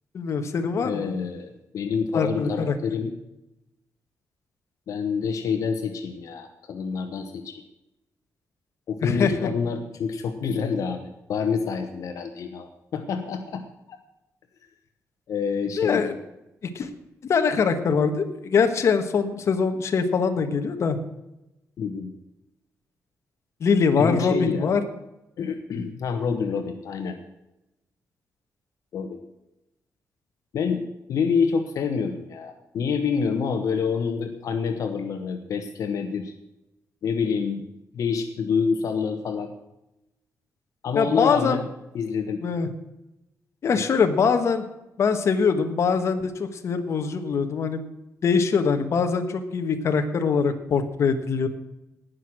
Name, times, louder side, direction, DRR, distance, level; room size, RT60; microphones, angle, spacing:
voice 1, 0.1-1.1 2.1-2.8 9.0-9.5 15.7-16.2 16.6-16.9 17.3-21.0 23.6-24.8 40.9-41.6 42.4-42.7 43.6-44.6 45.0-47.8 48.2-51.5, left 5 dB, 55° left, 6 dB, 1.4 m, -23 dB
voice 2, 0.8-3.1 4.9-7.6 8.9-14.0 15.3-16.1 21.8-22.1 24.0-24.8 25.4-27.2 28.9-29.2 30.5-36.3 37.0-37.7 37.9-39.5 40.8-41.7 41.9-42.4, left 6 dB, 70° left, 6 dB, 1.2 m, -27 dB
18.5 x 6.4 x 6.2 m, 0.93 s
wide cardioid pair, 140°, 6 cm